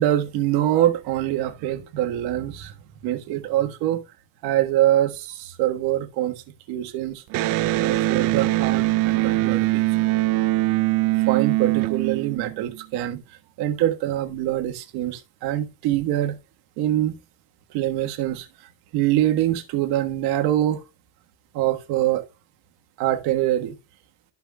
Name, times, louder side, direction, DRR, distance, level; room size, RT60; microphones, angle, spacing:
voice 1, 0.0-2.7 3.0-4.0 4.4-6.4 6.7-7.2 7.8-9.8 11.3-13.2 13.6-16.4 16.8-17.2 17.7-18.5 18.9-20.8 21.5-22.2 23.0-23.7, right 13 dB, 80° right, 1.5 m, -24 dB
Electric guitar, 7.3-12.8, right 18 dB, 60° right, 0.5 m, -22 dB
13.0 x 5.9 x 2.3 m
cardioid pair, 175°, 38 cm